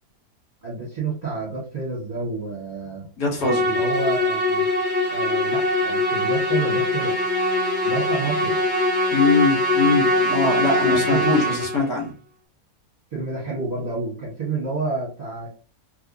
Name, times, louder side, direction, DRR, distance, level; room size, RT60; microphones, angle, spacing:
voice 1, 0.6-3.1 3.5-4.7 5.1-7.2 7.8-8.6 10.9-11.4 13.1-15.5, right 3 dB, 30° right, -5 dB, 1.2 m, -29 dB
voice 2, 3.2-3.7 9.1-12.1, left 4 dB, 70° left, -1 dB, 1.6 m, -22 dB
Musical instrument, 3.4-11.9, left 1 dB, 45° left, 0.7 m, -22 dB
3.4 x 3.1 x 2.6 m, 0.40 s
omnidirectional pair, 1.6 m